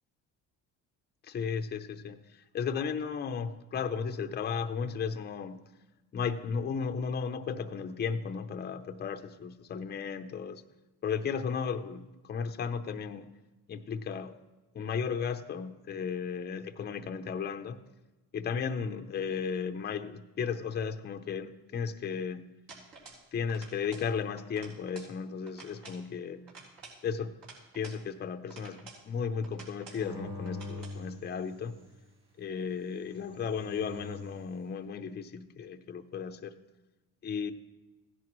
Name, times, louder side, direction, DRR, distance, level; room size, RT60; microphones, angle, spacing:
voice 1, 1.2-2.2 2.5-5.6 6.1-10.6 11.0-13.3 13.7-14.4 14.7-17.8 18.3-22.5 23.3-26.4 27.0-27.3 27.7-31.7 32.4-36.5 37.2-37.5, left 6 dB, 25° left, 8 dB, 0.6 m, -35 dB
sound 1, 22.7-23.2 23.5-24.1 24.4-25.1 25.5-26.0 26.5-28.0 28.5-29.0 29.4-30.0 30.4-31.0, right 4 dB, 65° right, 3.9 m, -50 dB
sound 2, 29.9-31.9 32.9-34.4, left 2 dB, 85° right, 4.8 m, -43 dB
15.5 x 10.5 x 3.1 m, 1.1 s
cardioid pair, 105°, 38 cm